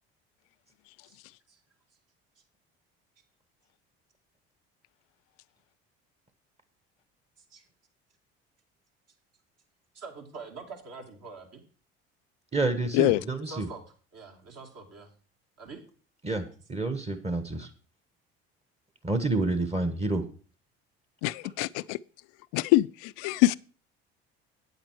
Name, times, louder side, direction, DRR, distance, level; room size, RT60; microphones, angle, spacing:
voice 1, 9.9-11.6 13.4-13.8 14.1-15.1 15.6-15.8, right 4 dB, 50° right, 2.5 m, -44 dB
voice 2, 12.5-13.7 16.2-16.4 16.7-17.7 19.0-20.2, right 2 dB, 20° right, 1.2 m, -28 dB
voice 3, 21.2-22.0 22.5-23.6, left 18 dB, 70° left, 0.5 m, -24 dB
8.6 x 7.9 x 4.5 m
hypercardioid pair, 65°, 32 cm